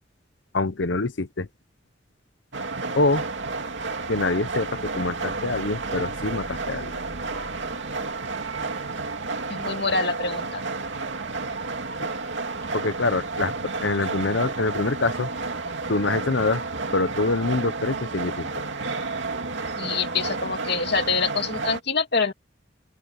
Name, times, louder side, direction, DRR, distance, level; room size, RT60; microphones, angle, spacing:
voice 1, 0.5-1.5 2.9-3.2 4.1-6.9 12.0-12.1 12.7-15.3 15.9-16.6 16.9-18.5, left 3 dB, 85° left, 1.0 m, -25 dB
sound 1, 2.5-21.8, right 3 dB, 80° right, 2.6 m, -31 dB
voice 2, 9.5-10.6 19.8-22.3, left 4 dB, 65° left, 2.7 m, -25 dB
open air
head